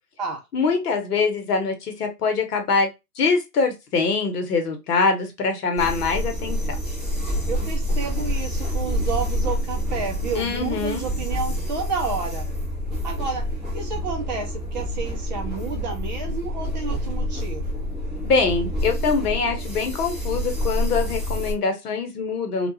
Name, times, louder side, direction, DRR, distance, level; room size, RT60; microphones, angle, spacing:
voice 1, 0.5-2.9 3.2-6.8 10.4-11.0 18.2-22.7, left 4 dB, 70° left, 5 dB, 0.9 m, -23 dB
sound 1, 5.8-21.5, equal, ahead, 0.9 m, -27 dB
voice 2, 7.5-12.5 13.0-13.4 13.7-17.8, right 5 dB, 30° right, 1 dB, 0.5 m, -30 dB
2.3 x 2.3 x 2.7 m, 0.23 s
hypercardioid pair, 120°, 49 cm